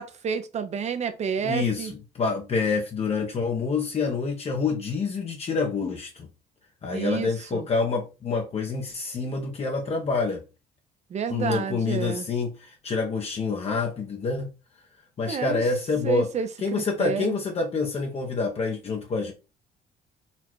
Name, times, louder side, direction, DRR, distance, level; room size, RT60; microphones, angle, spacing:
voice 1, 0.0-1.9 6.9-7.7 11.1-12.3 15.3-15.7 16.0-17.4, right 6 dB, 40° right, 0.7 m, -30 dB
voice 2, 1.4-6.3 6.8-10.4 11.3-14.5 15.2-16.3 16.6-19.3, left 4 dB, 35° left, 0.9 m, -27 dB
4.2 x 2.3 x 4.6 m
cardioid pair, 110°, 17 cm